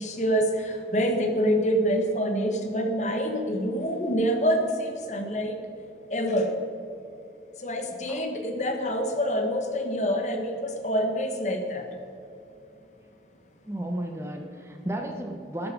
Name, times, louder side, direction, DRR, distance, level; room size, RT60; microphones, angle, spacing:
voice 1, 0.0-5.6 6.1-6.5 7.6-11.8, equal, 40° left, 4 dB, 1.5 m, -26 dB
voice 2, 13.7-15.7, right 1 dB, 15° right, 3 dB, 1.0 m, -33 dB
12.5 x 11.5 x 5.3 m, 2.7 s
head